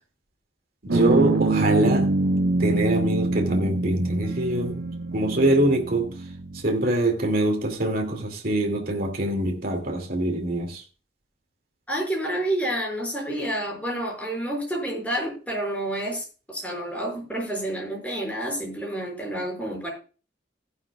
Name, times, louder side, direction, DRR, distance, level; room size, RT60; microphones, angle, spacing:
voice 1, 0.8-2.1 2.6-4.8 5.1-6.1 6.6-10.8, right 1 dB, 55° right, 2.4 m, -24 dB
sound 1, 0.9-6.7, right 2 dB, 85° right, 0.8 m, -25 dB
voice 2, 11.9-19.9, right 1 dB, 10° left, 5.7 m, -29 dB
15.0 x 11.0 x 2.3 m
head